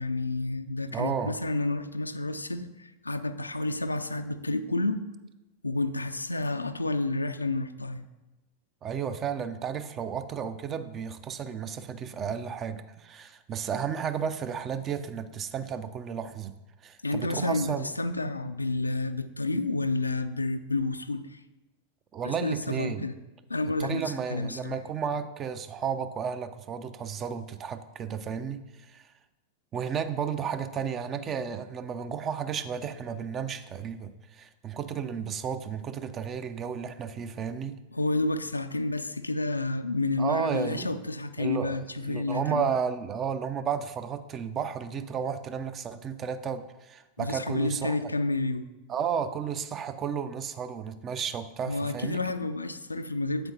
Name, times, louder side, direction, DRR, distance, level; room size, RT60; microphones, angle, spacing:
voice 1, 0.0-5.0 5.6-8.0 17.0-21.4 22.2-23.1 23.5-24.8 37.9-42.7 47.2-48.6 51.7-53.5, left 2 dB, 80° left, 10 dB, 0.4 m, -30 dB
voice 2, 0.9-1.4 8.8-16.5 16.8-17.9 22.1-23.1 23.8-29.1 29.7-37.8 40.2-40.9 41.4-41.8 42.1-48.0 48.9-52.2, right 7 dB, 30° right, 11 dB, 0.5 m, -33 dB
8.3 x 7.9 x 2.9 m, 1.1 s
figure-of-eight pair, 90°, 0 cm